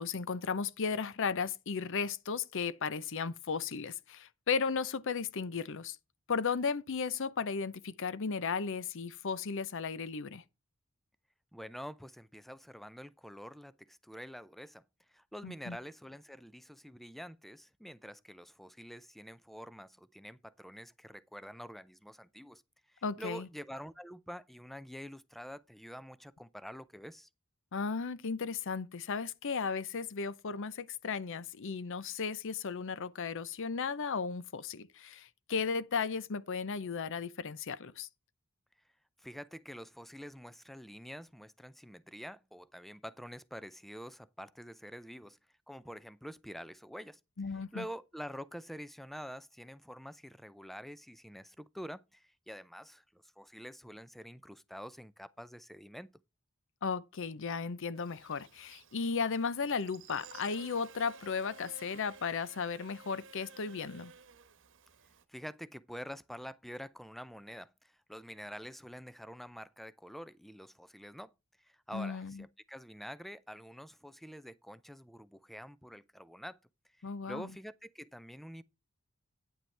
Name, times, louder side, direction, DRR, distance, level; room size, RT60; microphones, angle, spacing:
voice 1, 0.0-6.0 6.3-10.4 15.4-15.8 23.0-23.5 27.7-38.1 47.4-47.8 56.8-64.1 71.9-72.4 77.0-77.5, left 5 dB, 60° left, 0.7 m, -35 dB
voice 2, 11.5-14.8 15.1-22.6 22.9-27.3 39.2-45.4 45.7-47.2 47.7-56.2 65.3-71.3 71.6-76.6 77.3-78.6, equal, ahead, 0.4 m, -47 dB
Buzz, 58.0-65.2, right 5 dB, 60° right, 1.1 m, -55 dB
9.1 x 8.8 x 3.3 m
head